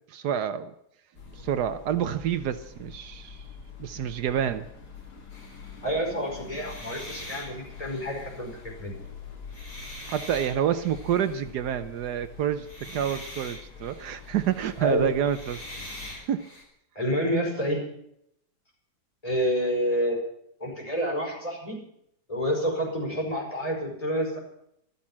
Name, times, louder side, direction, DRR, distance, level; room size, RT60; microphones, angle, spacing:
voice 1, 0.1-0.7 1.3-3.4 3.8-4.7 10.1-15.6 16.3-16.5, right 9 dB, 75° right, 11 dB, 1.3 m, -28 dB
sound 1, 1.1-16.2, left 5 dB, 70° left, 2.8 m, -45 dB
sound 2, 5.3-5.9 6.4-9.0 9.4-11.5 12.5-16.6, left 1 dB, 40° left, 5.2 m, -44 dB
voice 2, 5.8-8.5 8.8-9.0 14.8-15.1 17.0-17.8 19.2-20.2 20.6-21.8 22.3-24.4, equal, 20° left, 0 dB, 5.2 m, -28 dB
13.0 x 13.0 x 7.3 m, 0.75 s
omnidirectional pair, 1.8 m